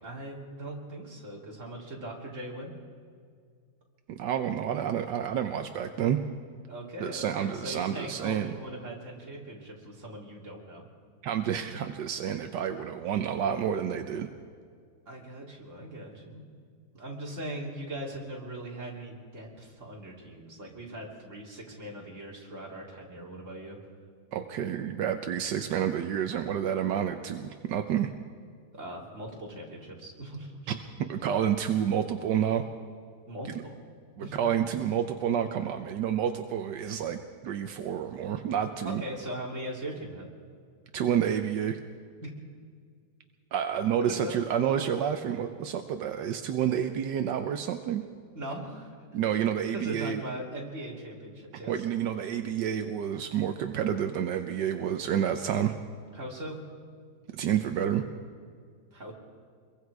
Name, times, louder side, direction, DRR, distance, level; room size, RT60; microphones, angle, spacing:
voice 1, 0.0-2.7 6.7-10.9 15.1-16.4 16.9-23.8 28.7-30.5 33.3-33.5 34.2-34.4 38.8-40.3 42.2-42.3 44.1-44.4 48.3-48.9 49.7-51.8 56.1-56.6 58.9-59.1, right 1 dB, 45° right, -2 dB, 3.5 m, -40 dB
voice 2, 4.1-6.2 7.0-8.5 11.2-14.3 24.3-28.1 30.7-30.8 31.1-32.6 34.2-37.2 37.4-39.0 40.9-41.8 43.5-48.0 49.1-50.2 51.7-55.7 57.3-58.0, right 9 dB, 85° right, 6 dB, 1.5 m, -29 dB
26.0 x 22.5 x 4.8 m, 2.1 s
omnidirectional pair, 1.8 m